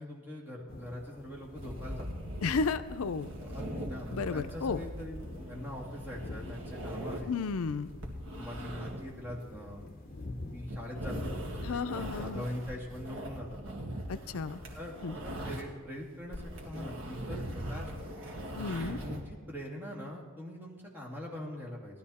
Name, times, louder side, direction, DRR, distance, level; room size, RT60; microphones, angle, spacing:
voice 1, 0.0-2.1 3.4-5.2 5.5-7.4 8.3-9.9 10.5-13.8 14.7-18.1 19.0-22.0, left 1 dB, 10° right, -3 dB, 2.4 m, -42 dB
sound 1, 0.7-12.9, left 2 dB, 40° left, 1.0 m, -48 dB
sound 2, 1.5-15.9 16.2-19.2, equal, 65° right, 2.1 m, -41 dB
voice 2, 2.4-3.3 4.1-4.8 7.3-7.9 11.6-12.4 14.1-14.6 15.0-15.2 18.6-19.0, left 4 dB, 80° left, 11 dB, 0.5 m, -33 dB
17.5 x 12.0 x 4.2 m, 1.5 s
head